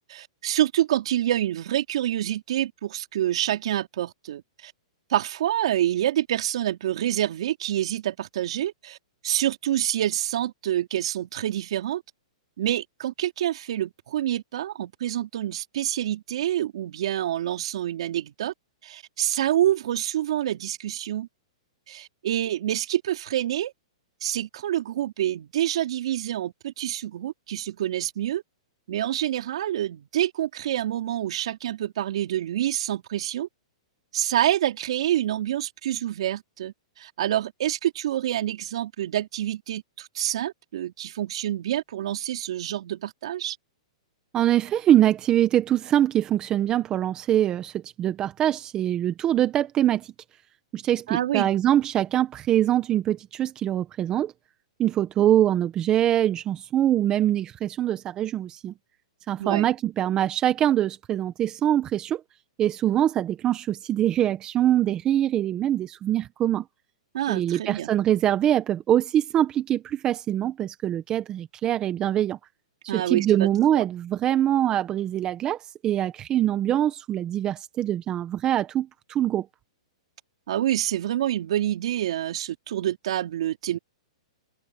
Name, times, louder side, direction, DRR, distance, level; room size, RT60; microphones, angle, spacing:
voice 1, 0.0-4.7 5.1-9.0 9.2-12.0 12.6-18.5 18.8-21.3 21.9-23.7 24.2-28.4 28.9-33.5 34.1-43.6 51.1-51.5 59.4-59.7 67.1-67.9 72.9-73.5 73.8-73.9 80.5-83.8, right 12 dB, 65° right, 4.2 m, -27 dB
voice 2, 44.3-50.1 50.7-54.3 54.8-58.7 59.3-62.2 62.6-66.6 67.3-72.4 72.8-79.5, right 11 dB, 25° right, 1.3 m, -23 dB
hypercardioid pair, 145°, 3 cm